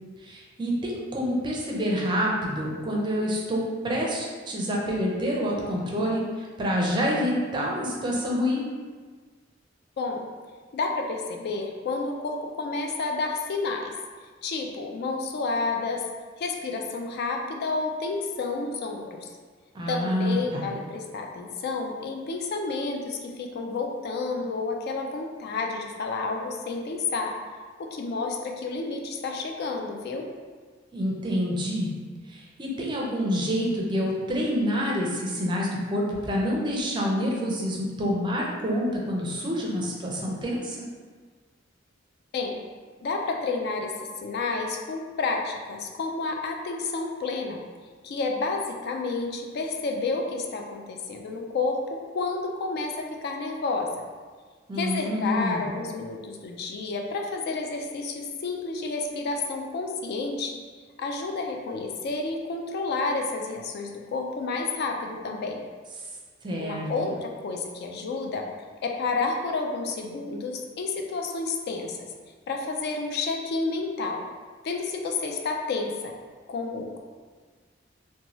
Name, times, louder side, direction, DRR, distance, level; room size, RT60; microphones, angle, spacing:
voice 1, 0.2-8.6 19.7-20.6 30.9-31.9 32.3-40.8 54.7-55.7 66.4-66.9, equal, 25° right, -3 dB, 0.5 m, -27 dB
voice 2, 10.0-10.3 10.7-13.9 14.4-16.0 16.4-19.3 19.9-27.3 27.8-30.3 42.3-42.6 43.0-43.9 44.2-47.6 48.0-53.9 54.8-60.6 61.0-65.6 66.6-68.4 68.8-72.0 72.5-74.2 74.6-76.1 76.5-77.0, left 3 dB, 55° left, 2 dB, 0.3 m, -30 dB
2.7 x 2.2 x 2.9 m, 1.5 s
head